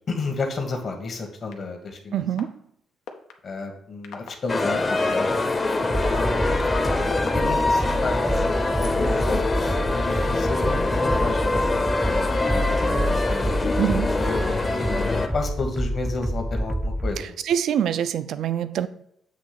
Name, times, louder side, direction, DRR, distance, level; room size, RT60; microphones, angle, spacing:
voice 1, 0.1-2.2 3.4-5.3 6.1-6.7 7.1-13.6 13.9-14.7 15.3-17.4, left 3 dB, 50° left, 1.3 m, -32 dB
sound 1, 1.5-1.6 2.4-2.5 3.1-3.3 4.0-4.3 5.1-5.2 5.8-7.8 8.5-9.3, left 7 dB, 90° left, 0.7 m, -38 dB
voice 2, 2.1-2.5 13.8-14.1 17.2-18.9, right 9 dB, 75° right, 0.4 m, -25 dB
sound 2, 4.5-15.3, left 2 dB, 30° left, 0.7 m, -24 dB
sound 3, 5.9-17.2, equal, ahead, 0.4 m, -28 dB
7.4 x 2.9 x 5.8 m
cardioid pair, 90°, 0 cm